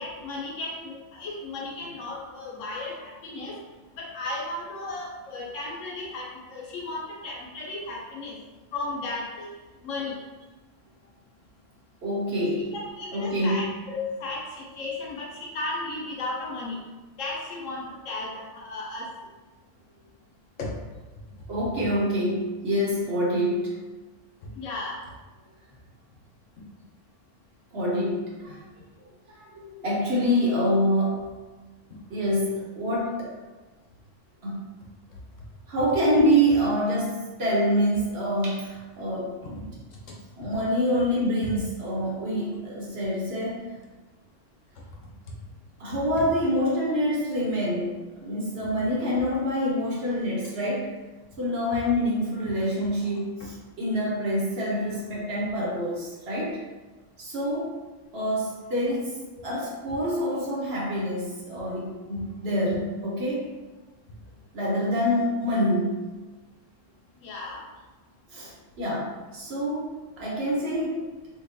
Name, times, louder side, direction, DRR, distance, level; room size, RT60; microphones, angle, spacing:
voice 1, 0.0-3.6 4.0-8.3 8.7-9.5 9.8-10.2 12.7-16.8 17.2-19.1 20.6-20.7 24.5-25.0 67.2-67.6, left 2 dB, 75° left, -3 dB, 1.1 m, -34 dB
voice 2, 12.0-12.7 13.1-13.7 21.5-23.7 27.7-28.6 29.3-31.3 32.1-33.4 34.4-34.7 35.7-39.7 40.4-43.6 45.8-50.9 51.4-56.6 57.2-57.8 58.1-63.4 64.5-66.0 68.3-68.5 68.8-71.1, equal, 55° right, -5 dB, 1.1 m, -26 dB
2.8 x 2.3 x 3.9 m, 1.2 s
omnidirectional pair, 1.3 m